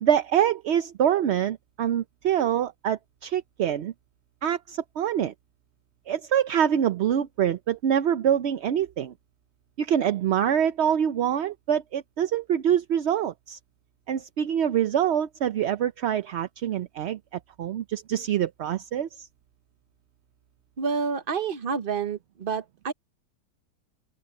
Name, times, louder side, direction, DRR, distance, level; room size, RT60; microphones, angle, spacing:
voice 1, 0.0-3.9 4.4-5.3 6.1-9.1 9.8-13.6 14.1-17.2 17.6-19.3, right 9 dB, 60° right, 0.7 m, -25 dB
voice 2, 20.8-22.9, right 5 dB, 40° right, 1.1 m, -29 dB
open air
omnidirectional pair, 1.7 m